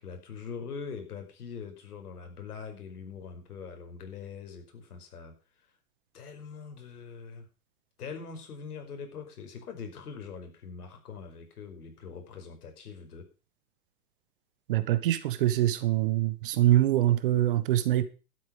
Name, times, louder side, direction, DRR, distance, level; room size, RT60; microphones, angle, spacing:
voice 1, 0.0-5.3 6.1-7.5 8.0-13.3, left 5 dB, 85° left, 5.4 m, -42 dB
voice 2, 14.7-18.0, right 14 dB, 35° right, 1.2 m, -24 dB
12.0 x 8.8 x 7.0 m
hypercardioid pair, 170°, 44 cm